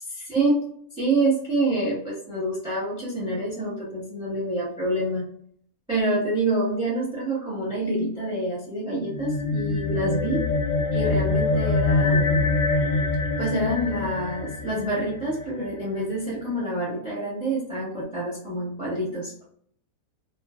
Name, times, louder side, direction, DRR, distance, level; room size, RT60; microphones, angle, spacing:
voice 1, 0.1-0.6 1.0-5.3 5.9-10.5 10.9-12.5 13.4-19.3, right 2 dB, 5° right, -5 dB, 0.8 m, -27 dB
sound 1, 9.0-15.7, left 3 dB, 70° left, 0.8 m, -25 dB
2.7 x 2.4 x 2.4 m, 0.64 s
omnidirectional pair, 1.5 m